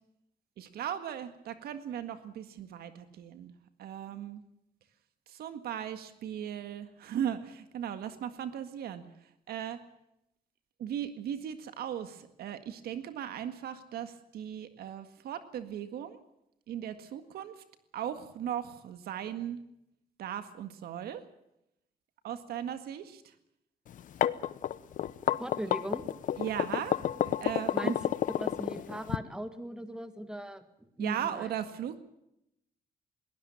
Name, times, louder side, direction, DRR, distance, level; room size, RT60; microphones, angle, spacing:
voice 1, 0.6-4.4 5.3-9.0 9.5-9.8 10.8-16.2 16.7-17.6 17.9-19.6 20.2-21.2 22.2-23.3 26.4-27.0 27.3-27.9 31.0-32.0, right 10 dB, 80° right, 10 dB, 1.8 m, -37 dB
sound 1, 23.9-29.2, left 10 dB, 55° left, 0.9 m, -30 dB
voice 2, 25.4-26.0 27.7-28.0 28.4-31.5, right 1 dB, 5° right, 10 dB, 1.7 m, -39 dB
22.0 x 19.0 x 7.2 m, 0.80 s
cardioid pair, 160°, 16 cm